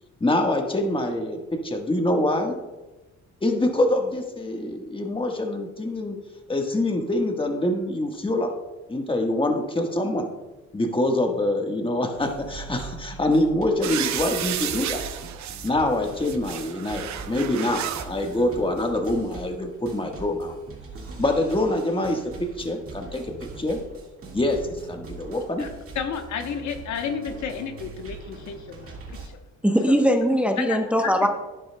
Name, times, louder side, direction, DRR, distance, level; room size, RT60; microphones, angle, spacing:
voice 1, 0.2-2.6 3.4-6.2 6.5-8.5 8.9-10.3 10.7-15.1 15.6-20.5 21.2-23.3 23.6-23.8 24.3-25.7, left 1 dB, 15° left, 3 dB, 1.4 m, -25 dB
sound 1, 12.1-29.3, right 4 dB, 45° right, 1.8 m, -42 dB
sound 2, 13.8-15.7 16.1-18.1 19.0-19.1, right 10 dB, 65° right, 0.8 m, -32 dB
voice 2, 25.9-29.4 29.9-30.0 30.6-31.3, left 7 dB, 70° left, 6 dB, 1.1 m, -32 dB
voice 3, 29.6-31.3, equal, 5° right, 3 dB, 0.9 m, -20 dB
11.0 x 10.5 x 2.2 m, 1.1 s
cardioid pair, 90°, 30 cm